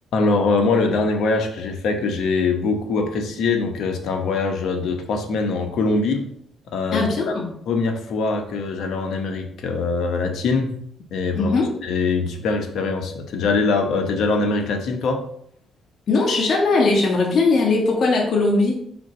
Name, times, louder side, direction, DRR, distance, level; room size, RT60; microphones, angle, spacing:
voice 1, 0.1-6.3 6.7-7.3 7.7-10.7 11.1-11.6 11.8-15.2, left 3 dB, 75° left, 4 dB, 1.0 m, -23 dB
voice 2, 6.9-7.5 11.4-11.7 16.1-18.8, left 3 dB, 55° left, 0 dB, 1.5 m, -19 dB
5.0 x 3.8 x 5.3 m, 0.69 s
cardioid pair, 90°, 0 cm